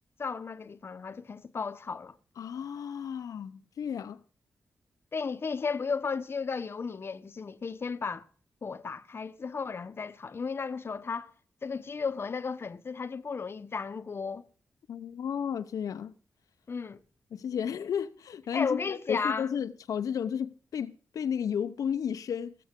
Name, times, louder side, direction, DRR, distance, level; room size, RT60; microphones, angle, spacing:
voice 1, 0.2-2.2 5.1-8.3 8.6-11.3 11.6-14.5 16.7-17.0 18.5-19.5, left 5 dB, 45° left, 0.9 m, -34 dB
voice 2, 2.4-4.2 14.9-16.1 17.3-22.6, left 8 dB, 90° left, 0.7 m, -33 dB
20.5 x 7.8 x 3.7 m
wide cardioid pair, 110°, 6 cm